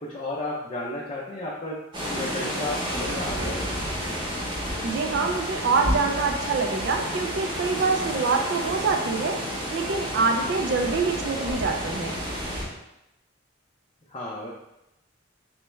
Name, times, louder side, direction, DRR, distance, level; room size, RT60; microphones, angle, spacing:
voice 1, 0.0-1.8 2.1-3.9 14.1-14.5, left 1 dB, 30° left, -4 dB, 0.5 m, -33 dB
sound 1, 1.9-12.6, equal, 25° right, 0.9 m, -30 dB
voice 2, 4.8-9.4 9.7-12.2, right 4 dB, 55° right, 3 dB, 0.4 m, -25 dB
3.3 x 3.2 x 3.1 m, 0.89 s
head